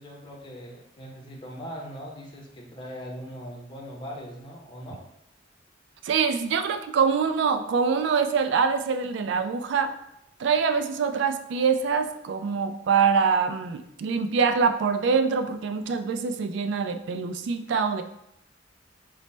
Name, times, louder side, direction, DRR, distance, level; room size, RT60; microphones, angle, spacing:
voice 1, 0.0-5.0, equal, 25° left, -2 dB, 0.5 m, -40 dB
voice 2, 6.0-10.0 10.4-18.0, right 5 dB, 65° right, 8 dB, 0.3 m, -24 dB
4.0 x 2.0 x 3.2 m, 0.80 s
head